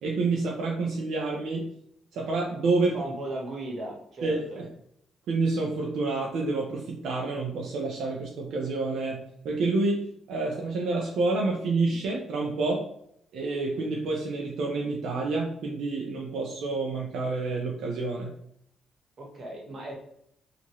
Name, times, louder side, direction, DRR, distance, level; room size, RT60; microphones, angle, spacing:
voice 1, 0.0-1.6 2.1-2.9 4.2-4.7 5.3-10.0 10.3-12.8 13.3-18.3, right 3 dB, 75° right, -1 dB, 0.5 m, -28 dB
voice 2, 2.9-4.6 19.2-19.9, right 1 dB, 45° right, -1 dB, 1.1 m, -37 dB
2.7 x 2.5 x 3.0 m, 0.71 s
cardioid pair, 90°, 0 cm